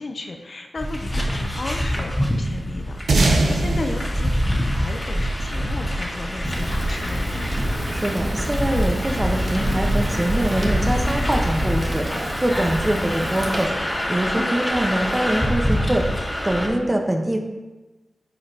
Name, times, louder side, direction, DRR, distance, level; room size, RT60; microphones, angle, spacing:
voice 1, 0.0-7.3 14.3-14.6, left 3 dB, 60° left, 4 dB, 0.7 m, -34 dB
sound 1, 0.8-16.7, equal, 15° left, 1.9 m, -25 dB
sound 2, 3.1-5.9, right 2 dB, 85° right, 0.9 m, -22 dB
Fire, 6.4-13.7, right 1 dB, 50° right, 1.5 m, -32 dB
voice 2, 7.9-17.4, right 1 dB, 25° right, 3 dB, 1.0 m, -24 dB
9.3 x 5.1 x 2.8 m, 1.1 s
cardioid pair, 40°, 0 cm